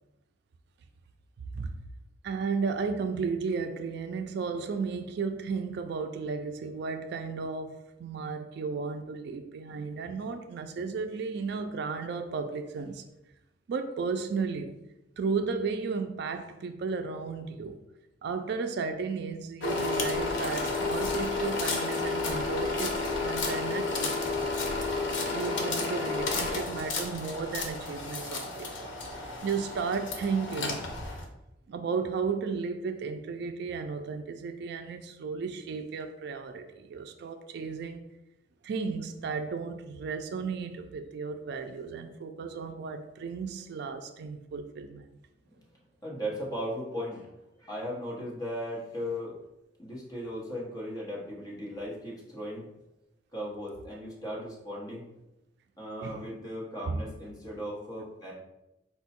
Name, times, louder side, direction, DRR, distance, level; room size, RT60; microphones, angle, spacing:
voice 1, 2.2-13.0 13.7-14.7 15.2-17.8 18.2-24.2 24.6-24.8 25.3-30.8 31.7-38.0 38.6-45.1 56.0-56.2 56.9-57.0, right 5 dB, 65° right, 7 dB, 0.4 m, -34 dB
sound 1, 19.6-31.2, left 3 dB, 85° left, 0.7 m, -31 dB
voice 2, 46.0-47.3 47.6-49.3 49.8-52.7 53.3-55.1 55.8-58.3, equal, 20° left, -4 dB, 1.1 m, -37 dB
4.4 x 2.2 x 4.3 m, 0.91 s
head